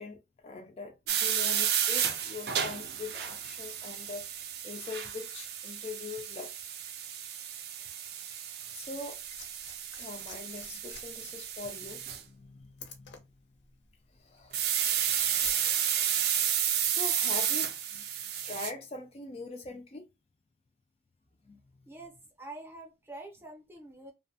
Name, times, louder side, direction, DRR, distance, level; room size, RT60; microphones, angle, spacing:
voice 1, 0.0-6.6 8.3-8.4 8.7-9.2 10.0-13.3 14.1-14.6 14.9-15.4 16.8-18.1 18.4-20.1 21.5-21.6, left 4 dB, 35° left, 0.3 m, -43 dB
sound 1, 1.1-12.2 14.5-18.7, right 9 dB, 60° right, 0.4 m, -32 dB
Liquid, 8.8-15.8 16.8-16.9, left 6 dB, 85° left, 0.7 m, -50 dB
voice 2, 21.9-24.1, right 2 dB, 15° right, 0.6 m, -46 dB
2.7 x 2.1 x 2.6 m
head